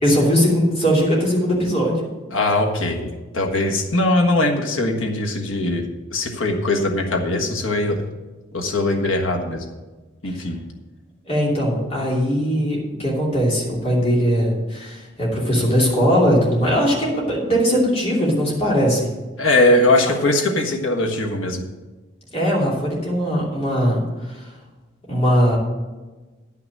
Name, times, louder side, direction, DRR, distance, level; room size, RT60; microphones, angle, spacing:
voice 1, 0.0-2.1 11.3-19.1 22.3-24.5 25.1-25.6, equal, 30° left, -4 dB, 2.9 m, -20 dB
voice 2, 2.3-8.0 8.5-9.6 10.2-10.6 19.4-21.6, left 2 dB, 75° left, 3 dB, 1.4 m, -20 dB
10.5 x 5.9 x 7.4 m, 1.2 s
head